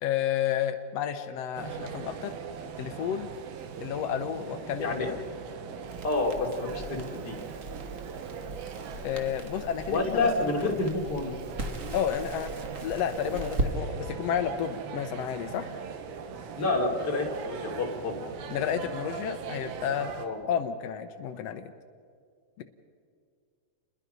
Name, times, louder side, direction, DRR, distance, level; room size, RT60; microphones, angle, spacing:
voice 1, 0.0-2.3 2.8-3.3 3.8-5.2 9.0-10.5 11.9-12.5 12.8-15.7 18.5-20.1 20.5-21.7 22.6-22.7, left 9 dB, 85° left, 8 dB, 1.4 m, -31 dB
sound 1, 1.6-20.3, right 7 dB, 90° right, 3.2 m, -40 dB
Crackle, 5.8-13.7, right 2 dB, 65° right, 0.7 m, -38 dB
voice 2, 6.0-7.0 7.2-7.4 9.9-11.3 16.6-18.1 20.2-20.4, left 3 dB, 30° left, 0 dB, 3.0 m, -28 dB
29.5 x 21.5 x 5.5 m, 2.2 s
omnidirectional pair, 4.2 m